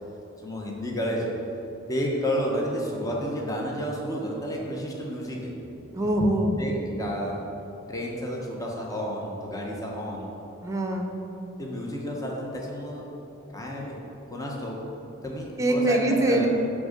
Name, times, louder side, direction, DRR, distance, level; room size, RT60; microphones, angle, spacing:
voice 1, 0.4-1.3 1.9-5.5 6.6-7.4 7.9-10.3 11.6-13.1 13.5-14.0 14.3-14.8 15.2-16.5, equal, 15° left, -2 dB, 1.0 m, -31 dB
voice 2, 5.9-6.6 10.6-11.1 15.6-16.5, right 1 dB, 15° right, 3 dB, 0.8 m, -23 dB
10.5 x 3.7 x 6.6 m, 3.0 s
head